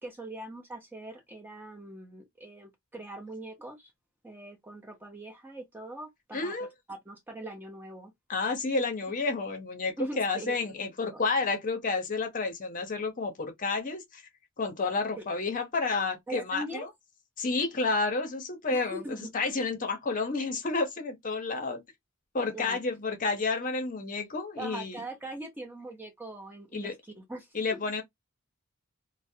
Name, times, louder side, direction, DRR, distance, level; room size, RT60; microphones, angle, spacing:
voice 1, 0.0-3.9 4.2-8.1 10.0-10.6 11.1-11.2 15.2-15.3 16.3-16.9 18.7-19.3 22.5-22.8 24.6-27.8, right 1 dB, 10° right, 0.4 m, -42 dB
voice 2, 6.3-6.7 8.3-14.2 14.6-16.9 17.4-19.0 19.3-21.8 22.3-25.0 26.7-26.9 27.5-28.0, left 3 dB, 35° left, 0.6 m, -30 dB
2.4 x 2.0 x 2.5 m
head